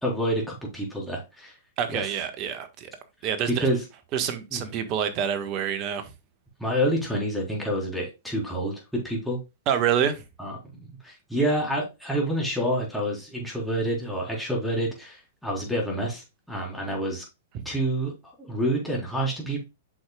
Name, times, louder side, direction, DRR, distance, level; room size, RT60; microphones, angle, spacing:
voice 1, 0.0-1.6 1.9-2.1 3.5-3.8 4.5-4.6 6.6-9.4 10.4-17.2 17.6-18.1 18.4-19.6, right 1 dB, ahead, 4.0 m, -28 dB
voice 2, 1.8-2.9 3.2-3.7 4.1-6.0 9.7-10.2 17.5-17.6, right 8 dB, 40° right, 1.5 m, -27 dB
8.7 x 6.4 x 2.3 m
hypercardioid pair, 115°, 0 cm